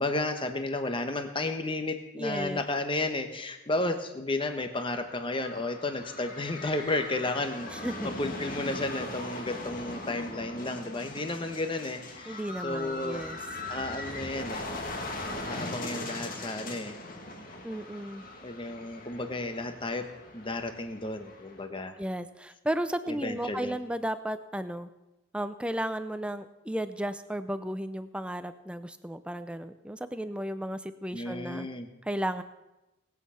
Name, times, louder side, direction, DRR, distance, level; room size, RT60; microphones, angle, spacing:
voice 1, 0.0-7.7 8.2-13.3 13.7-14.6 15.5-17.0 18.4-20.1 20.3-21.9 23.1-23.8 31.1-31.9, left 2 dB, 25° left, 7 dB, 1.1 m, -33 dB
voice 2, 2.2-2.6 7.7-8.1 12.3-13.4 17.6-18.2 22.0-24.9 25.3-31.7 32.0-32.4, right 1 dB, 5° right, 11 dB, 0.5 m, -34 dB
sound 1, 5.0-21.6, left 2 dB, 40° left, 1.8 m, -40 dB
19.5 x 8.5 x 5.7 m, 1.0 s
head